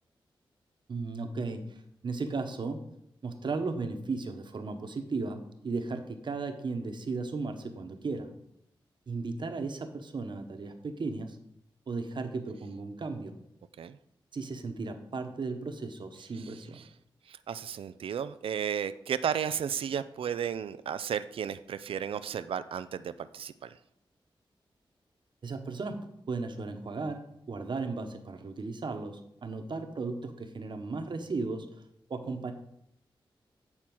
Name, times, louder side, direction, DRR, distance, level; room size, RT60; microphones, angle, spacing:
voice 1, 0.9-1.6 2.0-2.8 3.2-5.4 5.6-8.3 9.1-11.4 11.9-13.3 14.3-16.8 25.4-26.0 26.3-31.8 32.1-32.5, right 3 dB, 60° right, 6 dB, 1.1 m, -35 dB
voice 2, 16.3-16.9 17.3-23.8, right 8 dB, 85° right, 13 dB, 0.4 m, -34 dB
8.8 x 4.4 x 6.1 m, 0.76 s
wide cardioid pair, 85°, 9 cm